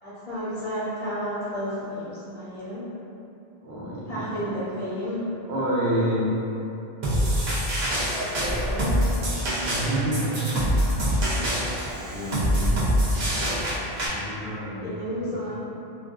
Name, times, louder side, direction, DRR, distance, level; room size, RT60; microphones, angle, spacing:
voice 1, 0.0-2.8 4.1-5.2 8.1-9.0 14.8-15.5, equal, 40° left, -11 dB, 0.7 m, -32 dB
voice 2, 3.6-4.6 5.1-6.3 8.4-8.6 9.7-10.6 11.5-11.7 12.1-13.2 14.1-15.4, right 1 dB, 85° right, -7 dB, 0.9 m, -29 dB
sound 1, 7.0-14.1, equal, 55° right, 0.6 m, -25 dB
2.5 x 2.3 x 2.2 m, 2.8 s
omnidirectional pair, 1.1 m